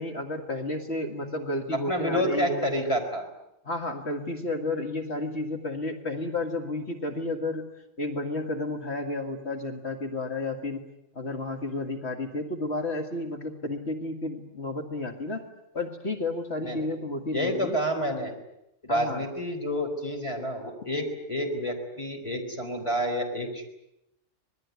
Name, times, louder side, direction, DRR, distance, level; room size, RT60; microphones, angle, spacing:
voice 1, 0.0-2.7 3.7-7.7 8.0-10.8 11.2-15.5 15.7-17.8 18.9-19.2, left 2 dB, 55° left, 4 dB, 2.2 m, -32 dB
voice 2, 1.7-3.3 16.6-16.9 17.3-18.3 18.8-23.6, equal, 25° left, 3 dB, 4.4 m, -29 dB
26.0 x 20.0 x 9.5 m, 0.87 s
omnidirectional pair, 1.3 m